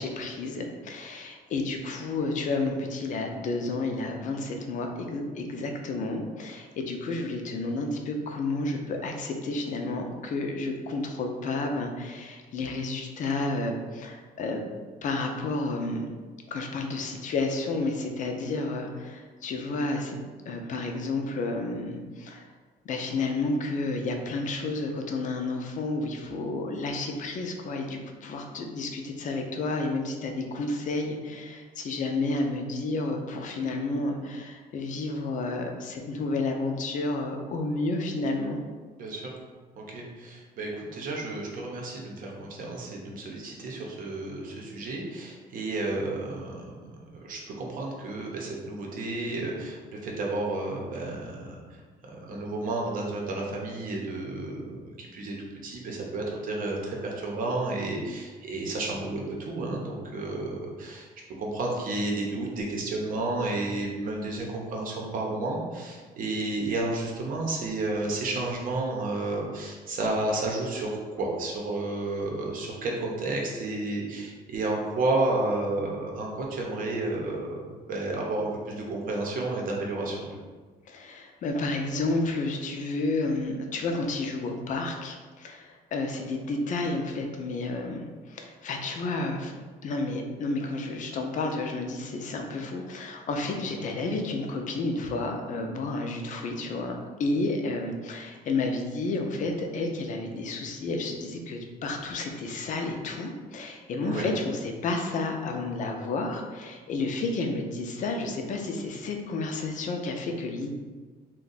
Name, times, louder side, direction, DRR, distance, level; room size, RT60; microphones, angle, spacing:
voice 1, 0.0-14.6 15.0-16.1 16.5-20.2 20.5-22.5 22.8-38.6 80.9-89.5 89.8-110.7, left 2 dB, 50° left, 3 dB, 0.5 m, -31 dB
voice 2, 39.0-39.3 39.8-49.8 50.0-51.6 52.1-61.1 61.4-80.3 104.0-104.3, right 2 dB, 55° right, -1 dB, 0.8 m, -31 dB
2.6 x 2.2 x 3.9 m, 1.4 s
cardioid pair, 110°, 17 cm